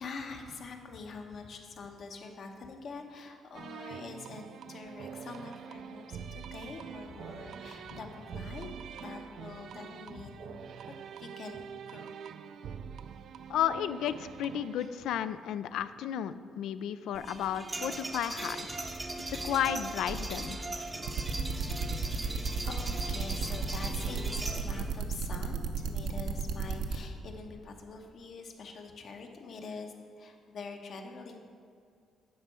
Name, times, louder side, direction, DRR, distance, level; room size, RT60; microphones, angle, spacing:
voice 1, 0.0-4.4 4.7-8.7 9.0-10.6 10.9-12.1 14.2-14.3 14.8-14.9 19.4-19.5 21.0-21.2 21.7-22.0 22.6-31.4, left 4 dB, 55° left, 3 dB, 1.0 m, -45 dB
sound 1, 3.5-15.0, right 7 dB, 60° right, 0.3 m, -45 dB
voice 2, 13.5-18.8 19.3-20.6, left 10 dB, 80° left, 13 dB, 0.3 m, -33 dB
sound 2, 17.1-24.9, right 2 dB, 15° right, 0.6 m, -39 dB
sound 3, 21.1-27.0, right 5 dB, 85° right, 0.7 m, -33 dB
9.4 x 4.5 x 6.7 m, 2.3 s
cardioid pair, 130°, 0 cm